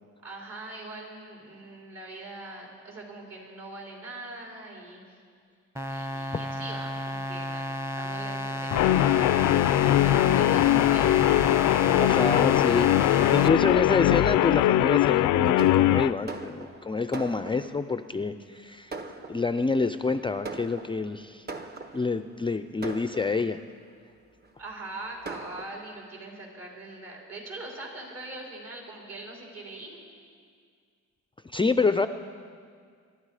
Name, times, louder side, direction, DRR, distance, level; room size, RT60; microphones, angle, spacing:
voice 1, 0.2-5.2 5.9-7.6 7.9-9.3 9.8-11.3 24.6-30.0, right 2 dB, 55° right, -2 dB, 4.8 m, -42 dB
sound 1, 5.8-13.5, equal, 10° right, 1.0 m, -32 dB
Guitar, 8.7-16.1, left 14 dB, 75° left, 0.5 m, -21 dB
voice 2, 12.0-18.9 19.3-21.5 21.9-23.6 31.5-32.1, left 4 dB, 15° left, 10 dB, 0.5 m, -27 dB
Fireworks, 15.6-17.9 18.5-18.6 18.9-19.8 20.4-22.2 22.8-23.7 24.4-24.5 24.9-25.0 25.3-25.7, right 3 dB, 35° right, 1.2 m, -40 dB
22.5 x 12.0 x 4.9 m, 2.1 s
cardioid pair, 90°, 30 cm